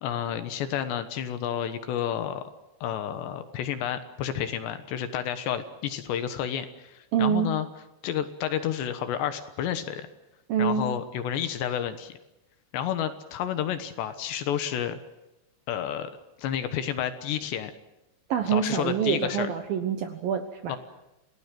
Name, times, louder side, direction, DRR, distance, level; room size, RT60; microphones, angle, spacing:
voice 1, 0.0-2.4 2.8-7.7 8.0-10.1 10.6-12.2 12.7-15.0 15.7-16.1 16.4-17.7 18.5-19.5 20.7-20.8, left 9 dB, 70° left, 10 dB, 3.2 m, -30 dB
voice 2, 7.1-7.5 10.5-10.9 18.3-20.8, right 8 dB, 70° right, 7 dB, 2.3 m, -26 dB
28.0 x 18.0 x 7.6 m, 0.97 s
omnidirectional pair, 5.6 m